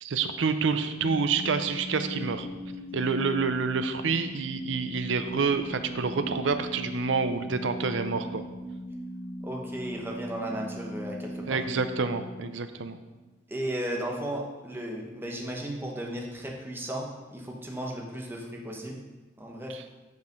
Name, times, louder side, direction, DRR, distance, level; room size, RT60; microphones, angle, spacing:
voice 1, 0.0-2.5 2.9-8.4 11.5-13.0 19.7-19.8, right 4 dB, 65° right, 9 dB, 0.6 m, -28 dB
sound 1, 1.0-13.1, equal, 45° left, 0.7 m, -39 dB
voice 2, 9.4-11.6 13.5-19.0 19.4-19.7, right 1 dB, 10° right, -1 dB, 1.1 m, -35 dB
8.1 x 5.1 x 5.3 m, 1.2 s
head